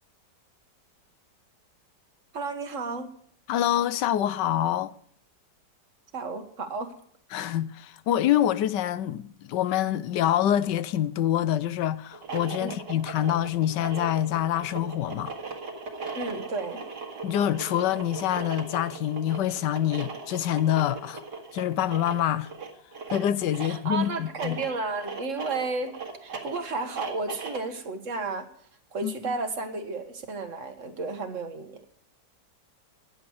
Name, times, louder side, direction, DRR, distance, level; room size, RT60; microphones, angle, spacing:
voice 1, 2.3-3.1 6.1-6.9 12.6-12.7 16.1-16.9 23.6-28.5 28.9-31.8, right 3 dB, 45° right, 1.9 m, -33 dB
voice 2, 3.5-4.9 7.3-15.3 17.2-21.2 21.5-22.5 23.1-24.6 29.0-29.1, left 11 dB, 85° left, 1.3 m, -26 dB
sound 1, 12.1-27.8, right 4 dB, 70° right, 2.7 m, -38 dB
16.0 x 10.5 x 4.8 m
omnidirectional pair, 1.9 m